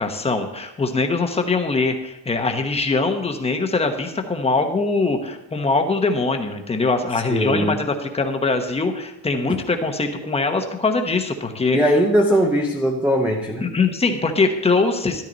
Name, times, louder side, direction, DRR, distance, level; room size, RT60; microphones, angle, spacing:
voice 1, 0.0-11.8 13.6-15.2, left 3 dB, 15° left, 5 dB, 1.1 m, -22 dB
voice 2, 7.3-7.8 11.7-13.6, equal, 5° right, 0 dB, 0.7 m, -19 dB
13.5 x 12.0 x 4.0 m, 0.85 s
cardioid pair, 165°, 42 cm